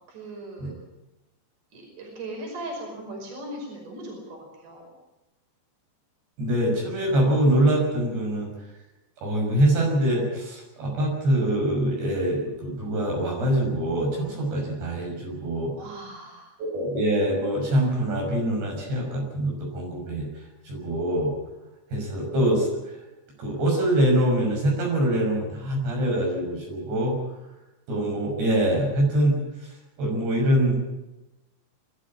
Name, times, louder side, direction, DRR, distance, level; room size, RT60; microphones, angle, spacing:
voice 1, 0.1-0.7 1.7-4.9 15.8-16.6, right 1 dB, 50° right, 0 dB, 6.8 m, -38 dB
voice 2, 6.4-8.5 9.2-15.7 16.6-21.3 21.9-23.0 23.4-27.2 27.9-30.8, right 1 dB, 70° right, 0 dB, 8.2 m, -24 dB
24.5 x 13.0 x 9.8 m, 1.0 s
omnidirectional pair, 5.0 m